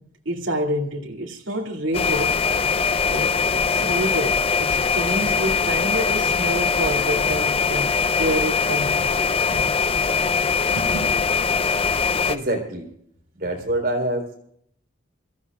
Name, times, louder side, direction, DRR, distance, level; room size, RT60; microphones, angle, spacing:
voice 1, 0.3-2.4 3.1-9.2, equal, 85° right, 2.4 m, -28 dB
sound 1, 1.9-12.4, left 5 dB, 30° left, 0.6 m, -22 dB
voice 2, 10.7-11.3 11.8-11.9 12.3-12.9 13.3-14.4, right 1 dB, 50° right, 4.0 m, -27 dB
26.5 x 15.5 x 2.4 m
head